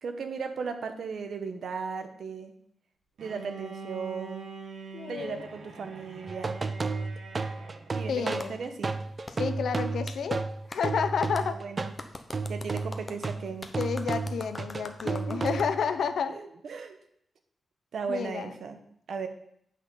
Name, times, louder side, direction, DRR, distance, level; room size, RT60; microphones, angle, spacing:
voice 1, 0.0-2.5 3.2-4.5 5.1-6.6 7.9-8.9 11.4-11.9 12.5-13.7 15.0-15.6 16.3-17.0 17.9-18.8 19.1-19.3, right 5 dB, 65° right, 7 dB, 1.0 m, -36 dB
Bowed string instrument, 3.2-8.1, right 4 dB, 85° right, 1.6 m, -43 dB
voice 2, 4.9-5.4 8.1-8.6 9.3-10.4 10.7-11.6 13.8-16.4 18.1-18.5, left 6 dB, 75° left, 10 dB, 0.6 m, -30 dB
sound 1, 6.3-12.0 12.3-15.9, right 4 dB, 30° right, 0.5 m, -32 dB
Clapping, 8.4-8.5 9.3-9.4 10.1-10.2 10.7-10.8 11.3-11.5 12.0-15.7, left 2 dB, 20° left, 0.6 m, -42 dB
8.3 x 5.7 x 5.5 m, 0.71 s
wide cardioid pair, 155°, 0 cm